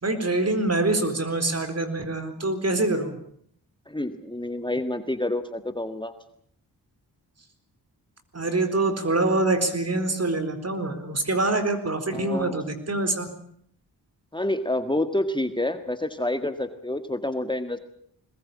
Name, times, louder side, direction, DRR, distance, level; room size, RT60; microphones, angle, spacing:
voice 1, 0.0-3.2 8.3-13.3, right 2 dB, 40° right, 9 dB, 4.2 m, -25 dB
voice 2, 3.9-6.1 12.1-12.6 14.3-17.8, left 1 dB, 10° left, 8 dB, 1.8 m, -28 dB
22.0 x 20.0 x 8.7 m, 0.65 s
cardioid pair, 65°, 38 cm